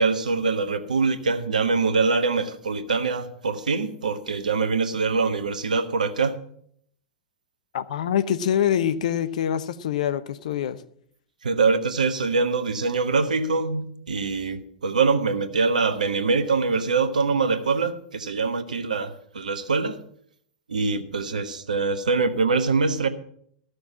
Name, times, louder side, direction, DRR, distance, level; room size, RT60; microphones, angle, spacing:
voice 1, 0.0-6.4 11.4-20.0 20.7-23.1, right 4 dB, 75° right, 10 dB, 1.2 m, -24 dB
voice 2, 7.7-10.8, left 9 dB, 65° left, 13 dB, 0.8 m, -25 dB
14.0 x 6.5 x 7.3 m, 0.66 s
figure-of-eight pair, 95°, 4 cm